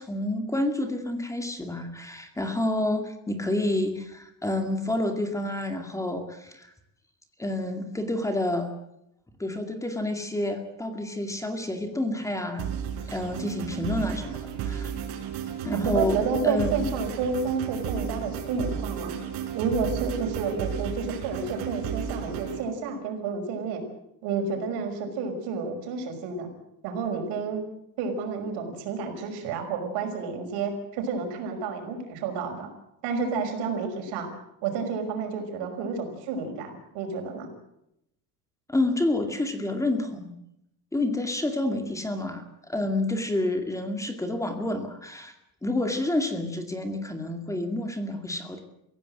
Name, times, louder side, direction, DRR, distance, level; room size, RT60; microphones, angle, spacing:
voice 1, 0.0-6.7 7.4-8.7 9.4-12.7 13.1-14.9 15.6-16.2 16.4-16.7 38.7-40.3 40.9-45.3 45.6-48.6, left 1 dB, 10° left, 6 dB, 2.2 m, -29 dB
sound 1, 12.6-22.6, right 8 dB, 70° right, 4.9 m, -33 dB
voice 2, 15.7-19.1 19.5-23.8 24.2-26.5 26.8-27.6 28.0-32.7 33.0-34.3 34.6-37.5, right 5 dB, 85° right, 5 dB, 5.9 m, -30 dB
25.0 x 16.0 x 7.8 m, 0.81 s
cardioid pair, 160°, 39 cm